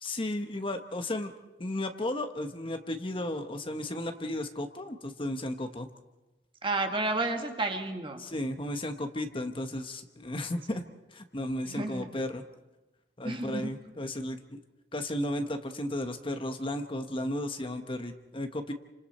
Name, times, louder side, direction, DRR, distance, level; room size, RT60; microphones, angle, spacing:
voice 1, 0.0-1.3 1.6-5.9 8.2-10.8 11.1-12.4 13.2-14.6 14.9-18.7, left 1 dB, 30° left, 7 dB, 1.1 m, -34 dB
voice 2, 6.6-8.3 10.7-10.8 11.6-12.2 13.2-13.7, right 2 dB, 30° right, 4 dB, 1.9 m, -31 dB
29.0 x 26.0 x 4.3 m, 1.1 s
head